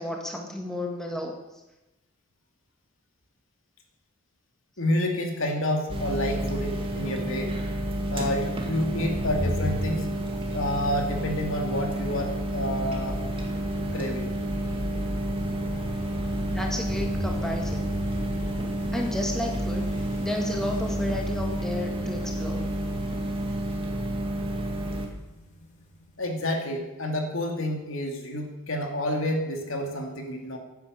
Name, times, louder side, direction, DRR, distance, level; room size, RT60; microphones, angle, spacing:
voice 1, 0.0-1.4 16.5-17.9 18.9-19.9 20.2-22.7, left 1 dB, ahead, 1 dB, 1.6 m, -32 dB
voice 2, 4.8-7.5 8.1-10.1 10.5-13.2 13.9-14.3 26.2-30.6, left 1 dB, 65° left, 2 dB, 2.7 m, -29 dB
sound 1, 5.9-25.1, right 1 dB, 25° right, 2.1 m, -30 dB
sound 2, 8.9-26.2, left 1 dB, 35° left, 2.7 m, -38 dB
14.0 x 9.6 x 8.3 m, 1.0 s
head